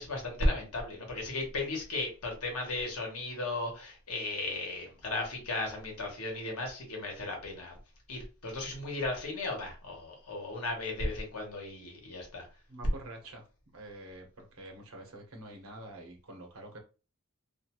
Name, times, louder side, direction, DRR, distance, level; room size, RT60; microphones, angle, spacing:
voice 1, 0.0-7.8 8.1-12.5, left 2 dB, 85° left, 2 dB, 1.0 m, -35 dB
voice 2, 12.7-13.4 13.7-16.8, right 1 dB, 75° right, 3 dB, 0.8 m, -47 dB
2.5 x 2.3 x 2.9 m, 0.33 s
head